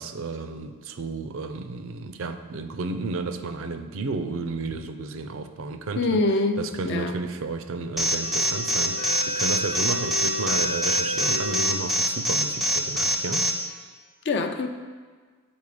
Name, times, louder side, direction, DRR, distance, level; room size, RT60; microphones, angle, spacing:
voice 1, 0.0-6.2 6.6-13.5, right 3 dB, 60° right, 0.5 m, -32 dB
voice 2, 6.0-7.1 14.3-14.7, left 3 dB, 50° left, 0.5 m, -24 dB
Alarm, 8.0-13.5, equal, ahead, 0.5 m, -23 dB
sound 1, 8.2-11.7, equal, 30° left, 0.9 m, -32 dB
7.1 x 4.2 x 4.9 m
head